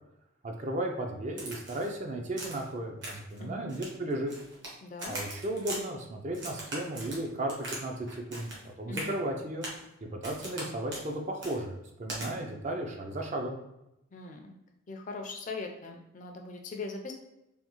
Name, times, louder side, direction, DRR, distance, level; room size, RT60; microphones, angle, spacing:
voice 1, 0.4-4.3 5.1-8.5 8.8-9.7 10.0-13.6, right 1 dB, 35° right, 2 dB, 0.4 m, -35 dB
Crack, 1.4-1.9 2.4-2.7 3.0-3.4 3.7-4.7 5.0-5.8 6.3-7.8 8.1-8.6 8.9-9.1 9.6-9.8 10.2-10.6 10.9-11.1 11.4-11.6 12.1-12.3, right 2 dB, 60° right, 1.1 m, -40 dB
voice 2, 3.4-3.7 4.8-5.2 8.9-9.1 14.1-14.5 14.9-17.1, left 3 dB, 40° left, 3 dB, 0.4 m, -40 dB
3.5 x 2.3 x 2.9 m, 0.89 s
head